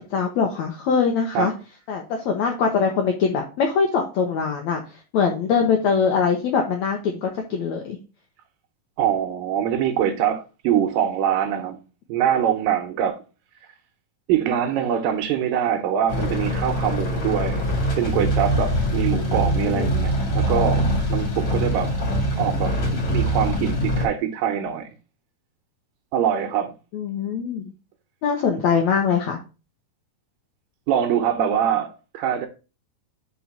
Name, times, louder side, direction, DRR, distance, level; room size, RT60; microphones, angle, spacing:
voice 1, 0.1-1.5 1.9-4.8 5.1-8.0 19.1-20.1 26.9-27.7 28.2-29.4, left 6 dB, 75° left, 1.6 m, -23 dB
voice 2, 9.0-11.8 12.1-13.2 14.3-17.6 18.0-21.9 22.4-24.9 26.1-26.8 30.9-32.5, right 9 dB, 75° right, 2.3 m, -24 dB
sound 1, 16.1-24.1, equal, 45° left, 2.5 m, -23 dB
5.4 x 4.4 x 5.7 m
omnidirectional pair, 4.4 m